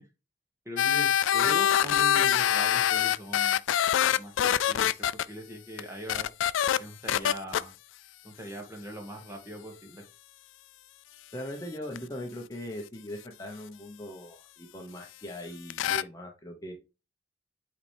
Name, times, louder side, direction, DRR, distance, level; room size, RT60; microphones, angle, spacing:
voice 1, 0.6-3.6 4.1-4.9 5.3-6.3 6.8-7.7 8.2-10.0, equal, 15° right, 2 dB, 1.6 m, -41 dB
sound 1, 0.8-5.2 5.8-5.9 6.1-6.8 7.1-7.6 12.0-12.1 15.7-16.0, left 10 dB, 90° left, 0.3 m, -24 dB
voice 2, 11.3-16.7, equal, 20° left, 2 dB, 0.9 m, -40 dB
8.1 x 4.3 x 3.3 m, 0.29 s
head